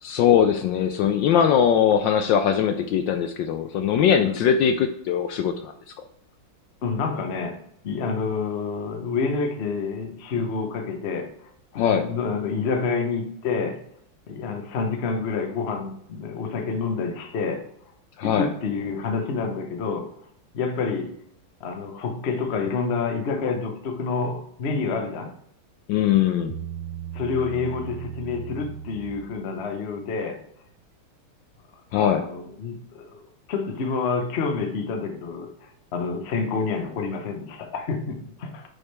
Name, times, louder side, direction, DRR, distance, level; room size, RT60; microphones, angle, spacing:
voice 1, 0.0-5.7 11.7-12.1 18.2-18.5 25.9-26.5 31.9-32.3, left 8 dB, 75° left, 7 dB, 1.1 m, -21 dB
voice 2, 6.8-7.6 7.8-11.3 11.7-13.8 14.3-17.6 18.2-20.1 20.5-21.1 21.6-25.3 27.1-30.4 31.9-33.2 33.5-38.6, left 4 dB, 50° left, 5 dB, 0.7 m, -28 dB
Bass guitar, 26.5-29.9, right 10 dB, 80° right, 1.4 m, -37 dB
8.4 x 4.9 x 3.3 m, 0.71 s
omnidirectional pair, 2.3 m